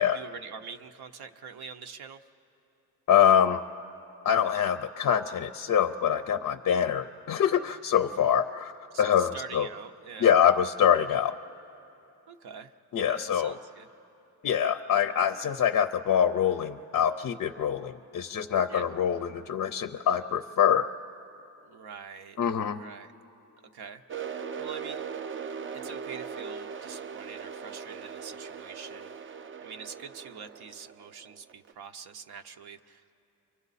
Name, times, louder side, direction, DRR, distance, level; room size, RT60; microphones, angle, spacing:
voice 1, 0.0-2.2 8.9-10.3 12.3-12.7 13.0-13.9 18.7-18.9 21.6-22.4 22.8-23.1 23.7-25.0 25.7-29.3 29.6-33.3, right 6 dB, 75° right, 6 dB, 0.8 m, -45 dB
voice 2, 3.1-3.6 4.2-9.7 10.2-11.4 12.9-13.6 14.4-20.9 22.4-22.8, left 9 dB, 45° left, 10 dB, 0.5 m, -25 dB
sound 1, 24.1-31.7, right 6 dB, 35° right, 0.4 m, -39 dB
30.0 x 24.5 x 4.1 m, 2.8 s
wide cardioid pair, 140°, 39 cm